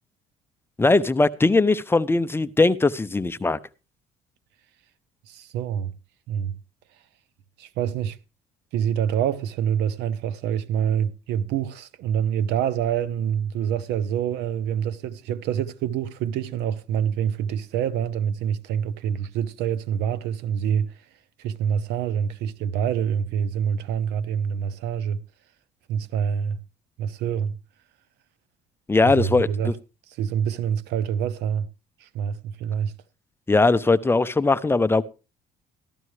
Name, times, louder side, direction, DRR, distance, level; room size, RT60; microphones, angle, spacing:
voice 1, 0.8-3.6 28.9-29.7 33.5-35.0, left 3 dB, 15° left, 0.5 m, -20 dB
voice 2, 5.3-5.9 6.3-6.6 7.6-8.2 8.7-21.1 21.4-25.2 25.9-26.6 27.0-27.6 29.0-29.7 30.1-31.7 32.0-32.9, right 8 dB, 90° right, 0.7 m, -26 dB
14.0 x 12.5 x 3.2 m
cardioid pair, 110°, 17 cm